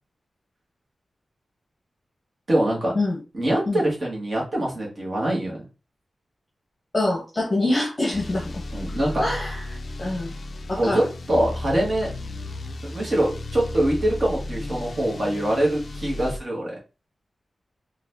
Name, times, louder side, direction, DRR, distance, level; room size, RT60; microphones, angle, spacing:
voice 1, 2.5-2.9 3.3-5.6 8.7-9.3 10.7-12.1 12.8-16.7, right 1 dB, 35° right, -3 dB, 1.5 m, -24 dB
voice 2, 6.9-8.4 9.2-9.6 10.0-10.3 10.7-11.1, left 2 dB, 25° left, -3 dB, 1.0 m, -24 dB
sound 1, 8.1-16.4, left 2 dB, 45° left, 0.4 m, -34 dB
4.1 x 2.5 x 2.7 m, 0.31 s
wide cardioid pair, 170°, 0 cm